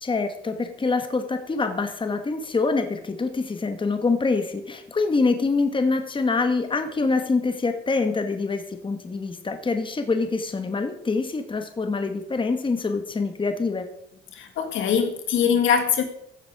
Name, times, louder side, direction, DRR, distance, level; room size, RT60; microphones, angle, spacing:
voice 1, 0.0-13.9, left 3 dB, 25° left, 7 dB, 1.4 m, -25 dB
voice 2, 14.3-16.0, left 7 dB, 80° left, 6 dB, 1.9 m, -22 dB
15.0 x 7.3 x 4.8 m, 0.75 s
cardioid pair, 90°, 20 cm